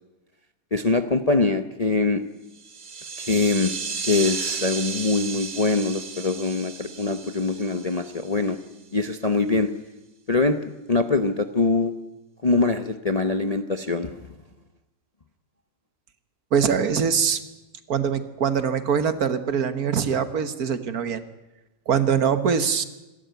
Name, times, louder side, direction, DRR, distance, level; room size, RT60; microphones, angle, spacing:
voice 1, 0.7-2.2 3.2-3.7 4.0-8.6 8.9-9.7 10.3-10.6 10.9-11.9 12.4-14.2, left 3 dB, 30° left, 8 dB, 0.7 m, -23 dB
sound 1, 2.5-8.6, right 5 dB, 35° right, 1.0 m, -34 dB
voice 2, 16.5-17.4 17.9-21.2 21.9-22.8, right 7 dB, 65° right, 11 dB, 1.7 m, -23 dB
26.5 x 13.0 x 9.3 m, 1.0 s
omnidirectional pair, 1.8 m